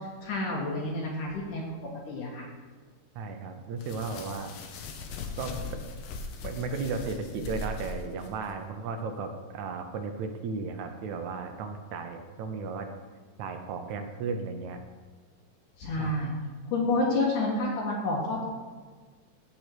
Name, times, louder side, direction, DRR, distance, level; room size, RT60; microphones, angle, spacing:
voice 1, 0.0-1.7 2.1-2.5 15.8-16.3 16.7-18.5, left 2 dB, 70° left, -3 dB, 2.9 m, -29 dB
voice 2, 3.2-4.5 5.4-5.8 6.4-12.9 13.4-14.8 16.0-16.1, right 4 dB, 70° right, 6 dB, 1.9 m, -35 dB
sound 1, 3.8-8.6, left 4 dB, 85° left, 2.7 m, -39 dB
16.0 x 5.5 x 4.5 m, 1.4 s
omnidirectional pair, 3.9 m